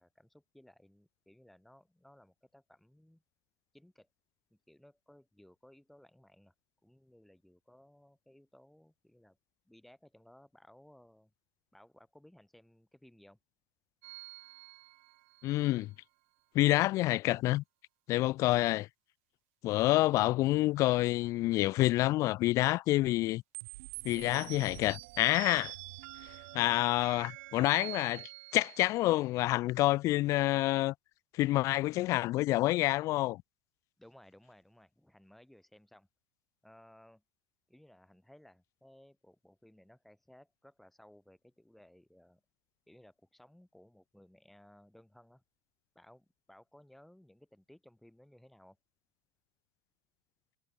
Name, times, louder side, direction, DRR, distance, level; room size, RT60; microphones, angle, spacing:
voice 1, 0.0-3.2 3.7-4.1 4.5-6.5 6.8-9.4 9.7-11.3 11.7-13.4 34.0-36.1 36.6-37.2 37.7-42.4 42.9-45.4 46.0-48.8, left 1 dB, 5° left, 7.2 m, -60 dB
overtone lir, 14.0-15.6 23.5-29.3, right 26 dB, 75° right, 1.8 m, -46 dB
voice 2, 15.4-15.9 16.5-17.6 18.1-18.9 19.6-23.4 24.0-25.7 26.5-30.9 31.3-33.4, left 17 dB, 50° left, 0.6 m, -28 dB
supercardioid pair, 125°, 7 cm